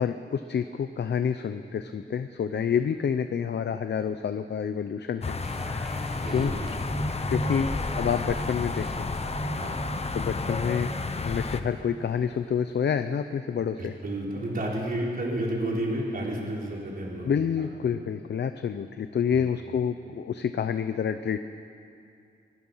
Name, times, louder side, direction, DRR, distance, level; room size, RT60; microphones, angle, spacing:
voice 1, 0.0-5.4 6.3-6.5 7.3-7.7 7.9-9.1 10.1-10.9 11.2-14.0 17.2-21.4, left 7 dB, 65° left, 10 dB, 0.7 m, -28 dB
sound 1, 5.2-11.6, left 3 dB, 35° left, 1.1 m, -31 dB
sound 2, 5.4-12.6 13.2-13.3, right 1 dB, ahead, 1.6 m, -38 dB
voice 2, 6.2-6.7 7.5-7.7 9.6-9.8 13.8-17.3 17.6-17.7 19.4-19.5, right 1 dB, 50° right, -3 dB, 4.4 m, -31 dB
24.5 x 20.0 x 5.7 m, 2.5 s
wide cardioid pair, 100°, 19 cm